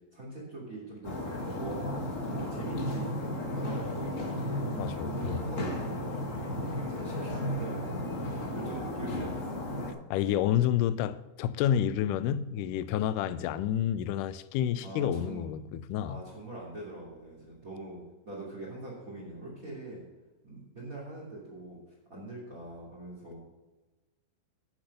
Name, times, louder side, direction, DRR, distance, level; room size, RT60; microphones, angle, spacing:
voice 1, 0.1-1.1 1.5-2.0 2.2-6.2 6.6-9.4 13.2-13.3 14.8-15.4 16.0-20.0 20.4-21.8 22.1-23.4, right 2 dB, 25° right, 3.1 m, -42 dB
sound 1, 1.0-9.9, left 1 dB, 65° left, 0.7 m, -34 dB
voice 2, 4.8-5.4 10.1-16.2, left 10 dB, 80° left, 1.9 m, -29 dB
9.9 x 7.2 x 6.8 m
omnidirectional pair, 4.1 m